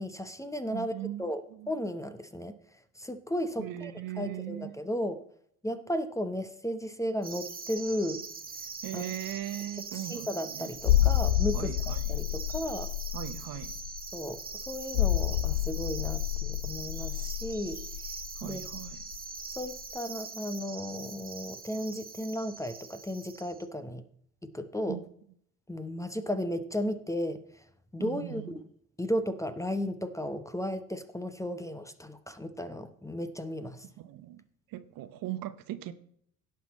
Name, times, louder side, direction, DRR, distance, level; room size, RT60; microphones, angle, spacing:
voice 1, 0.0-0.9 1.2-5.2 5.6-8.2 8.9-9.1 9.9-12.9 14.1-18.1 18.4-18.7 19.6-24.0 24.4-25.0 25.7-27.6 27.9-28.6 29.0-33.9, equal, 5° left, 11 dB, 0.9 m, -35 dB
voice 2, 0.7-1.3 1.6-1.7 3.6-4.7 8.8-10.3 10.6-10.7 11.5-12.0 13.1-13.7 18.4-19.0 24.9-25.0 28.0-28.6 34.0-34.4 34.7-35.9, right 13 dB, 50° right, 12 dB, 0.9 m, -38 dB
sound 1, 7.2-23.7, right 5 dB, 20° right, 1.3 m, -42 dB
sound 2, 10.8-19.2 19.5-19.7, left 14 dB, 70° left, 0.5 m, -29 dB
17.0 x 6.0 x 4.2 m, 0.66 s
figure-of-eight pair, 55°, 44 cm